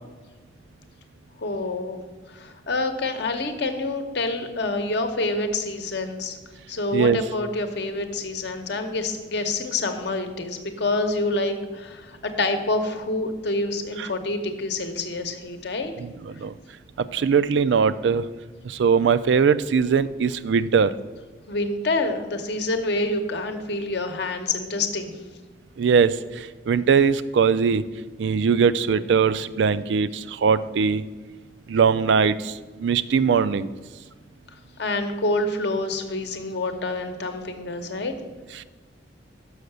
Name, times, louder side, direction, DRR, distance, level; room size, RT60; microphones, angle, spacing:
voice 1, 1.4-2.0 2.3-6.4 6.7-15.9 21.5-25.1 34.8-38.1, left 2 dB, 65° left, 6 dB, 0.8 m, -27 dB
voice 2, 17.1-18.2 18.8-20.9 25.8-26.1 26.7-27.8 28.2-30.1 30.4-31.0 31.7-32.4 32.8-33.7, right 6 dB, 70° right, 15 dB, 0.4 m, -20 dB
6.4 x 5.6 x 6.7 m, 1.3 s
head